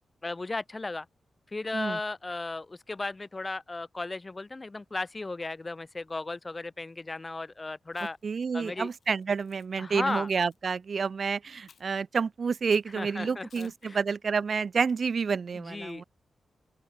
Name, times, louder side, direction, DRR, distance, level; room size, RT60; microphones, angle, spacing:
voice 1, 0.2-1.1 1.5-8.2 8.5-8.9 9.8-10.3 12.9-14.0 15.5-16.0, left 3 dB, 25° left, 0.5 m, -35 dB
Chewing mastication, 7.9-8.3 9.0-9.7 10.3-10.6 11.7-12.0 12.7-12.9 13.5-13.9, left 7 dB, 70° left, 1.9 m, -58 dB
voice 2, 8.2-16.0, right 5 dB, 55° right, 0.6 m, -29 dB
open air
cardioid pair, 90°, 0 cm